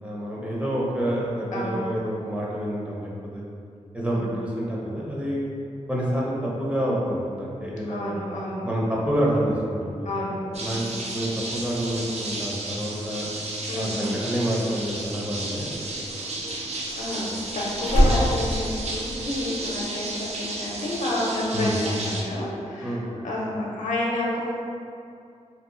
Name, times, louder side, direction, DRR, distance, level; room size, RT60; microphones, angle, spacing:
voice 1, 0.0-3.4 3.9-5.5 5.9-8.2 8.6-9.9 10.6-10.8 11.1-13.3 13.7-15.8 21.5-21.7 22.8-23.2, equal, 10° right, -5 dB, 0.5 m, -28 dB
voice 2, 1.5-1.8 4.0-4.3 7.9-8.7 10.0-11.0 13.7-14.0 17.0-24.5, left 1 dB, 75° left, -5 dB, 0.7 m, -30 dB
sound 1, 10.5-22.2, right 2 dB, 60° right, 0.5 m, -33 dB
Slam, 15.5-19.7 19.9-20.4, equal, 75° right, 1.0 m, -25 dB
2.7 x 2.1 x 3.7 m, 2.4 s
wide cardioid pair, 115°, 13 cm